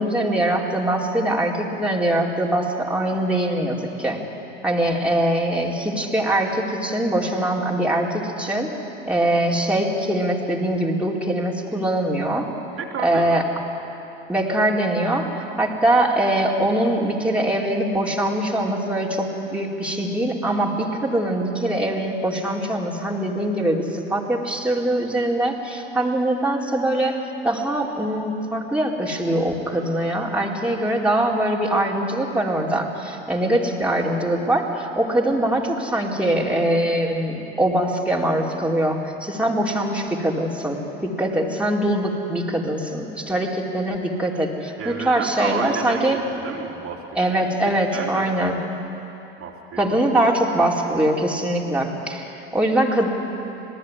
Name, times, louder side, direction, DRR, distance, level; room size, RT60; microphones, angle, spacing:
voice 1, 0.0-4.2 4.6-8.8 9.0-12.5 13.0-13.4 14.3-46.2 47.2-48.6 49.8-53.1, right 1 dB, 5° right, -3 dB, 4.5 m, -22 dB
voice 2, 12.8-13.4 44.8-47.3 47.9-48.5 49.4-49.9, right 6 dB, 45° right, -1 dB, 3.5 m, -31 dB
26.5 x 19.5 x 9.8 m, 3.0 s
hypercardioid pair, 70°, 31 cm